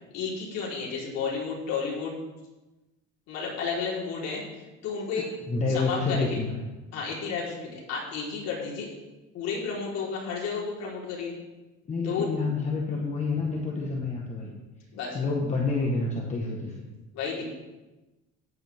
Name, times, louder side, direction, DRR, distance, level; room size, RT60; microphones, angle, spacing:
voice 1, 0.1-2.1 3.3-5.3 5.7-6.2 6.9-8.9 9.3-11.3 12.0-12.3 12.9-13.0 14.9-15.2 17.1-17.5, left 5 dB, 60° left, -4 dB, 4.2 m, -32 dB
voice 2, 5.5-6.6 11.9-14.5 15.1-16.8, left 3 dB, 25° left, -2 dB, 1.4 m, -28 dB
14.0 x 10.5 x 3.6 m, 1.1 s
cardioid pair, 155°, 29 cm